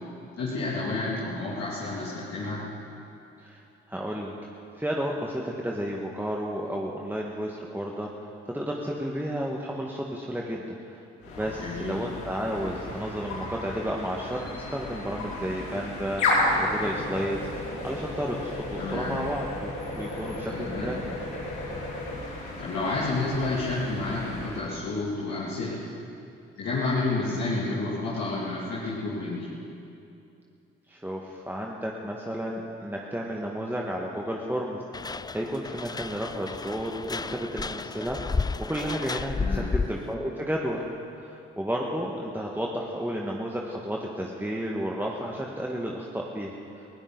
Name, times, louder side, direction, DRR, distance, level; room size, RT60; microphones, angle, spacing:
voice 1, 0.4-2.6 11.5-12.0 18.8-19.2 20.5-20.9 22.6-25.8 26.6-29.5 39.3-39.7, left 2 dB, 60° left, -8 dB, 2.9 m, -30 dB
voice 2, 3.4-4.5 4.8-8.1 8.5-11.0 11.4-17.4 17.8-20.9 30.9-40.8 41.1-46.9, equal, 5° right, -2 dB, 1.8 m, -32 dB
sound 1, 11.2-24.6, left 2 dB, 80° left, 3.6 m, -33 dB
sound 2, 34.9-40.1, left 4 dB, 15° left, 0.4 m, -32 dB
20.5 x 17.0 x 4.1 m, 2.7 s
hypercardioid pair, 45°, 29 cm